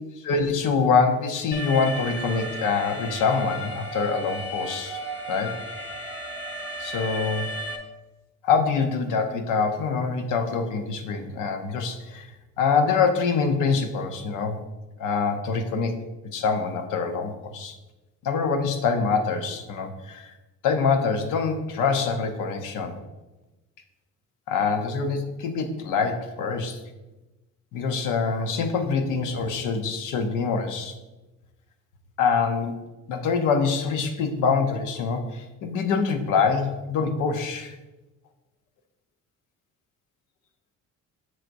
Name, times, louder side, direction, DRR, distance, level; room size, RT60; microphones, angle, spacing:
voice 1, 0.2-5.0 5.3-5.6 6.8-7.4 8.4-12.3 12.6-14.6 15.0-15.9 16.2-17.7 18.2-20.3 20.6-23.0 24.5-26.8 27.7-30.9 32.2-32.8 33.1-37.7, left 5 dB, 90° left, 6 dB, 0.8 m, -25 dB
Alarm, 1.5-7.8, right 1 dB, 35° left, 1.5 m, -34 dB
7.5 x 6.3 x 2.6 m, 1.1 s
cardioid pair, 90°, 30 cm